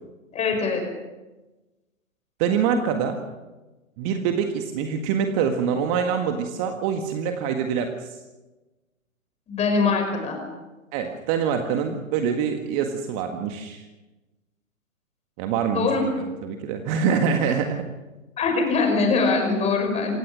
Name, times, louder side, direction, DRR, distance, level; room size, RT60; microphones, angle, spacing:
voice 1, 0.3-0.8 9.5-10.4 15.7-16.0 18.4-20.2, left 4 dB, 15° left, 4 dB, 5.7 m, -22 dB
voice 2, 2.4-3.2 4.0-8.1 10.9-13.8 15.4-17.8, right 7 dB, 25° right, 5 dB, 1.7 m, -25 dB
27.0 x 17.0 x 6.3 m, 1.1 s
figure-of-eight pair, 125°, 40 cm